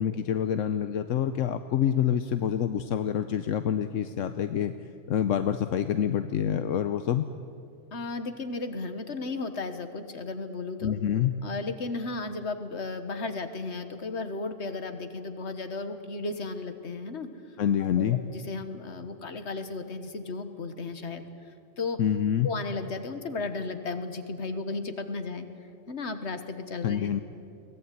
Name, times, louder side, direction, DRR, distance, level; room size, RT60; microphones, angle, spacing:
voice 1, 0.0-7.3 10.8-11.3 17.6-18.2 22.0-22.5 26.8-27.2, left 9 dB, 80° left, 10 dB, 1.1 m, -27 dB
voice 2, 7.9-11.0 11.4-22.0 22.4-27.2, left 3 dB, 60° left, 9 dB, 1.8 m, -35 dB
23.0 x 17.5 x 9.3 m, 2.5 s
omnidirectional pair, 1.3 m